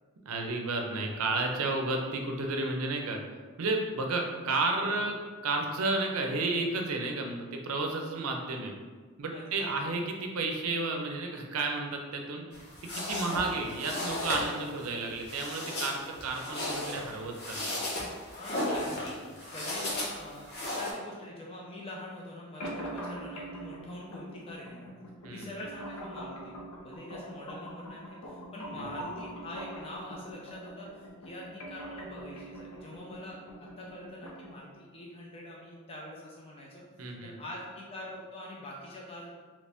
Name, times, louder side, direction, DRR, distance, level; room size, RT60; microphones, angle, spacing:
voice 1, 0.3-3.2 3.6-5.1 5.4-8.7 9.2-12.4 12.9-17.8 25.2-25.5 28.7-28.8 37.0-37.3, right 3 dB, 70° right, 2 dB, 0.5 m, -32 dB
voice 2, 4.4-4.9 9.3-10.0 16.4-17.0 18.2-24.9 25.3-26.6 26.8-39.3, left 1 dB, 25° left, -3 dB, 0.4 m, -45 dB
sound 1, 12.5-20.9, left 1 dB, 45° left, 0.8 m, -35 dB
sound 2, 22.6-34.6, equal, 85° left, 0.7 m, -43 dB
3.0 x 2.6 x 3.3 m, 1.5 s
head